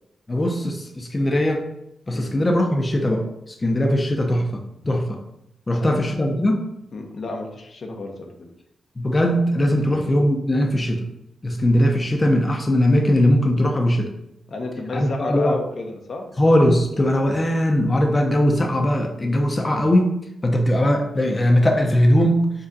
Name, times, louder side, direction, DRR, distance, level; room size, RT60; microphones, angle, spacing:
voice 1, 0.3-1.6 2.1-5.2 5.7-6.6 9.0-11.1 11.4-14.1 14.9-15.6 16.4-20.1 20.4-22.5, left 1 dB, 30° left, 2 dB, 0.6 m, -20 dB
voice 2, 5.7-6.0 6.9-8.5 9.9-10.0 14.5-16.3, left 2 dB, 65° left, 2 dB, 0.8 m, -32 dB
5.2 x 2.4 x 4.0 m, 0.82 s
cardioid pair, 75°, 0 cm